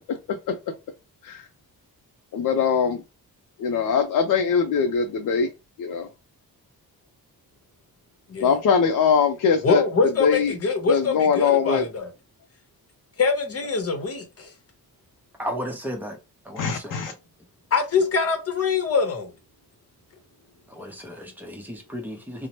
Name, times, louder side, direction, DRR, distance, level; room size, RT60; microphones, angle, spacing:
voice 1, 2.3-3.0 3.6-5.5 5.8-6.1 8.4-9.8 10.2-10.5 10.9-11.8 16.6-17.1, left 6 dB, 60° left, 0.5 m, -21 dB
voice 2, 9.6-12.1 13.2-14.5 17.7-19.3, left 4 dB, 40° left, 0.9 m, -24 dB
voice 3, 15.4-16.2 16.4-17.1 20.7-22.5, equal, 5° right, 0.7 m, -34 dB
2.8 x 2.1 x 2.9 m
cardioid pair, 100°, 36 cm